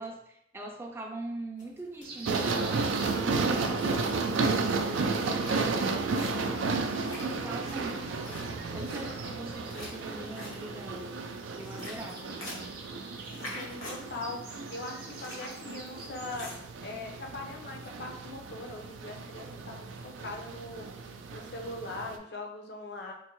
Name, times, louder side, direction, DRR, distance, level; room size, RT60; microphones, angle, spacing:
voice 1, 0.0-8.5 8.7-11.1 11.6-12.7, right 2 dB, 15° right, 2 dB, 0.4 m, -42 dB
sound 1, 1.6-17.9, left 1 dB, 85° left, 1.3 m, -48 dB
sound 2, 2.0-3.7 5.2-6.2 8.1-11.1 11.4-16.6, right 3 dB, 50° right, 0.7 m, -48 dB
sound 3, 2.3-22.2, right 4 dB, 90° right, 0.4 m, -33 dB
voice 2, 8.7-9.0 13.5-16.5 16.8-20.9 21.3-23.1, left 2 dB, 55° left, 1 dB, 0.6 m, -41 dB
4.5 x 2.1 x 3.0 m, 0.75 s
head